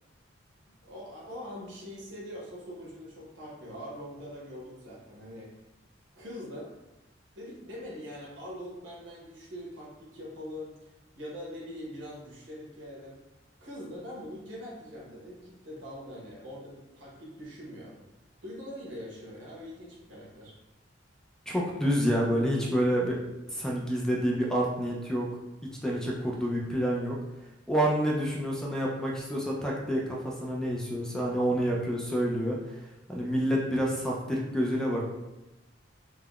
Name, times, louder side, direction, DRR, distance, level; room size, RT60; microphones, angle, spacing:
voice 1, 0.7-5.5 6.1-6.7 7.3-10.9 11.1-13.2 13.6-18.0 18.4-20.5, equal, 80° right, -4 dB, 1.0 m, -43 dB
voice 2, 21.5-23.2 23.5-25.3 25.6-27.2 27.7-35.1, equal, 5° left, -2 dB, 0.3 m, -28 dB
3.4 x 2.1 x 2.3 m, 0.99 s
head